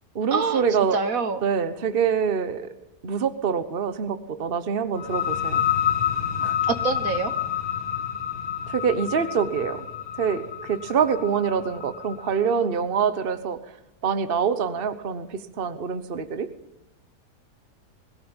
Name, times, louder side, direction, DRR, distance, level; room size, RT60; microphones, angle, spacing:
voice 1, 0.1-1.0 1.4-2.7 3.0-5.6 6.4-6.6 8.7-9.8 10.2-13.6 14.0-16.5, right 6 dB, 40° right, 11 dB, 1.3 m, -25 dB
voice 2, 0.9-1.4 6.6-7.3, right 5 dB, 60° right, 11 dB, 1.5 m, -25 dB
sound 1, 4.9-12.4, left 9 dB, 65° left, 2.9 m, -28 dB
21.5 x 17.0 x 9.0 m, 0.87 s
omnidirectional pair, 1.7 m